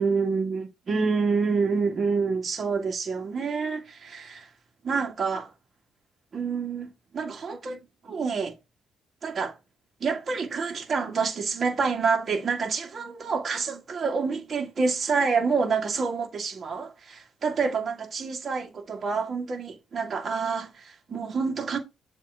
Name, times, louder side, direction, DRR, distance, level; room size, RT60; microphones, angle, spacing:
voice 1, 0.0-4.5 4.8-5.5 6.3-8.5 9.2-9.6 10.0-21.8, right 5 dB, 45° right, 1.9 m, -28 dB
7.5 x 3.1 x 4.8 m
cardioid pair, 90°, 0 cm